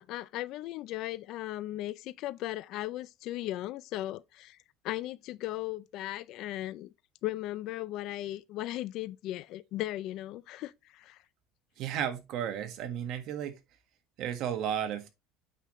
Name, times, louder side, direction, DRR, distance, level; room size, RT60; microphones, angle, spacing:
voice 1, 0.0-4.6 4.8-6.9 7.2-11.2, left 15 dB, 60° left, 0.5 m, -37 dB
voice 2, 11.8-13.6 14.2-15.1, right 9 dB, 55° right, 1.5 m, -33 dB
8.3 x 5.5 x 3.1 m
cardioid pair, 140°, 0 cm